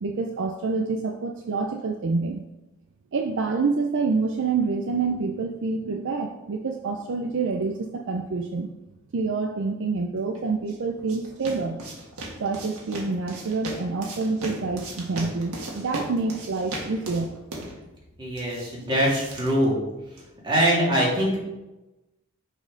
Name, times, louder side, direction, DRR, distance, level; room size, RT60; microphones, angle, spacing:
voice 1, 0.0-2.4 3.1-8.7 9.1-11.8 12.4-17.3, right 4 dB, 55° right, 4 dB, 0.5 m, -27 dB
sound 1, 10.4-20.4, right 1 dB, 75° right, 1.6 m, -38 dB
voice 2, 18.2-19.8 20.4-21.4, equal, 20° right, -5 dB, 2.2 m, -23 dB
6.4 x 4.1 x 5.0 m, 1.0 s
head